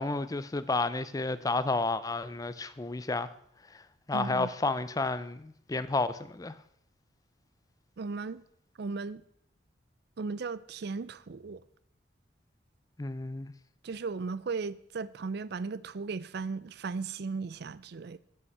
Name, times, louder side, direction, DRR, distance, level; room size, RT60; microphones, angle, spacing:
voice 1, 0.0-3.3 3.7-3.8 4.1-6.6 13.0-13.5, left 3 dB, 20° left, 0.4 m, -31 dB
voice 2, 4.1-4.5 8.0-8.4 8.8-9.2 10.2-11.6 13.8-18.2, right 4 dB, 60° right, 0.5 m, -36 dB
8.1 x 5.7 x 7.9 m
head